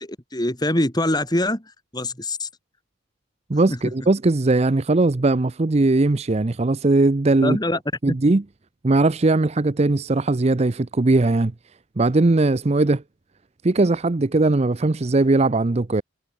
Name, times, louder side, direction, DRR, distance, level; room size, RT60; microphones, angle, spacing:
voice 1, 0.0-2.5 3.7-3.8 7.4-7.8 8.1-8.2, left 1 dB, 20° left, 3.8 m, -24 dB
voice 2, 3.5-7.6 8.0-8.4 8.8-11.5 12.0-13.0 13.6-16.0, right 2 dB, 35° right, 0.6 m, -19 dB
head